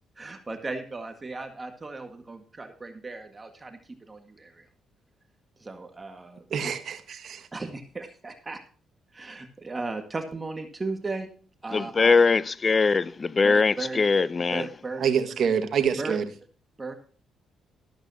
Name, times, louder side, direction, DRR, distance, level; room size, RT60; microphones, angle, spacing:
voice 1, 0.2-3.8 4.1-4.7 5.6-6.7 7.5-8.6 9.1-11.3 11.6-12.1 13.4-14.1 14.5-15.0 16.0-16.2 16.8-16.9, right 3 dB, 25° right, 1.7 m, -36 dB
voice 2, 6.5-7.5 15.0-16.3, right 7 dB, 60° right, 1.7 m, -26 dB
voice 3, 11.7-14.7, left 4 dB, 35° left, 0.6 m, -22 dB
13.0 x 12.5 x 2.8 m
cardioid pair, 90°, 0 cm